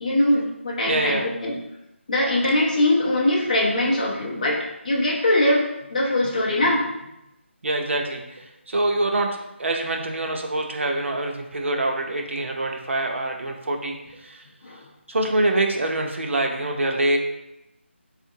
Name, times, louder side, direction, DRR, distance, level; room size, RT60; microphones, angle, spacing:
voice 1, 0.0-1.5 2.1-6.9 14.6-14.8, left 1 dB, 35° left, -2 dB, 0.6 m, -22 dB
voice 2, 0.9-1.3 7.6-14.4 15.1-17.2, right 2 dB, 70° right, 2 dB, 0.6 m, -25 dB
3.7 x 2.4 x 2.7 m, 0.88 s
figure-of-eight pair, 175°, 7 cm